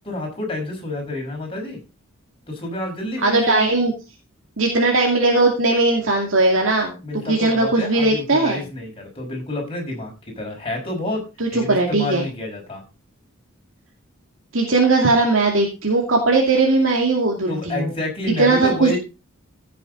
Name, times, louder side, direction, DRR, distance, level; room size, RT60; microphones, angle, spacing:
voice 1, 0.1-1.8 2.5-3.7 7.0-11.2 11.5-12.8 17.5-19.0, left 2 dB, 25° left, 0 dB, 5.8 m, -29 dB
voice 2, 3.2-3.9 4.6-8.6 11.4-12.2 14.5-17.9 18.4-19.0, right 3 dB, 65° right, 0 dB, 2.6 m, -18 dB
16.0 x 7.6 x 4.1 m, 0.29 s
head